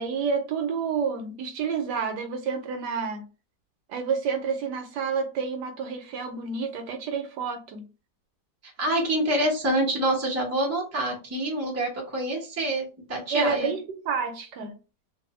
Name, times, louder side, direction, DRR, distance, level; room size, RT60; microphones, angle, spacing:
voice 1, 0.0-3.2 3.9-7.8 13.3-14.8, right 5 dB, 75° right, 1.1 m, -29 dB
voice 2, 8.6-13.7, right 1 dB, 20° right, 0.4 m, -26 dB
2.6 x 2.6 x 3.0 m
omnidirectional pair, 2.0 m